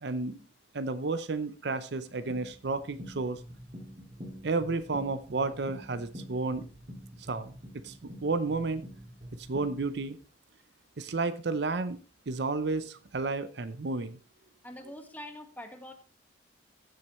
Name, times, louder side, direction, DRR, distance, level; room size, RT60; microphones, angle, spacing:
voice 1, 0.0-0.4 0.7-3.4 4.4-6.7 7.3-7.5 7.8-8.9 9.4-10.2 11.0-12.0 12.3-14.2, right 3 dB, 60° right, 13 dB, 0.6 m, -32 dB
sound 1, 2.3-10.0, equal, 40° right, 2.1 m, -46 dB
voice 2, 14.6-15.9, left 1 dB, 10° left, 5 dB, 1.5 m, -44 dB
15.0 x 7.6 x 3.1 m, 0.36 s
head